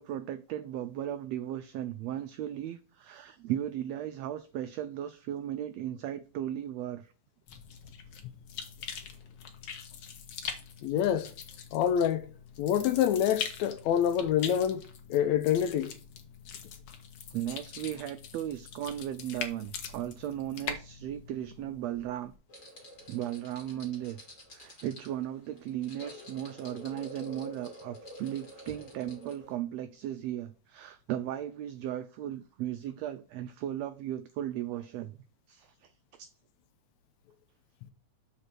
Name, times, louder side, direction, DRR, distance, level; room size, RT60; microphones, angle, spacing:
voice 1, 0.0-7.1 17.3-22.3 23.1-24.2 24.5-35.2 35.5-36.3, right 11 dB, 85° right, 1.5 m, -36 dB
sound 1, 7.5-22.3, left 7 dB, 65° left, 1.8 m, -43 dB
voice 2, 10.8-11.3 11.7-12.3 12.6-14.8 15.1-15.9, left 9 dB, 80° left, 1.8 m, -26 dB
sound 2, 22.5-29.5, left 1 dB, 30° left, 2.0 m, -48 dB
6.5 x 4.2 x 6.1 m
omnidirectional pair, 3.5 m